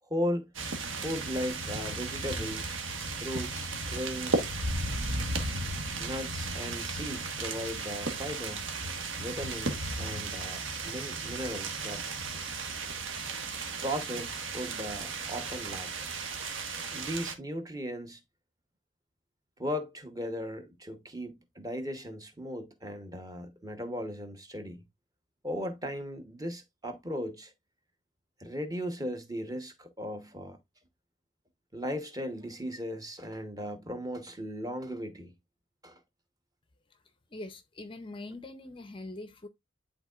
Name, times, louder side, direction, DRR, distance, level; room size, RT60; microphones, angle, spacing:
voice 1, 0.1-0.5 0.9-2.8 3.1-4.5 6.0-8.7 9.2-12.0 13.8-16.1 16.9-18.2 19.6-24.8 25.4-27.5 28.4-30.6 31.7-35.3 35.8-36.0, equal, 15° right, 0.9 m, -37 dB
sound 1, 0.5-17.3, right 3 dB, 70° right, 1.3 m, -35 dB
voice 2, 37.3-39.5, left 2 dB, 25° left, 0.5 m, -43 dB
11.0 x 3.7 x 2.4 m
head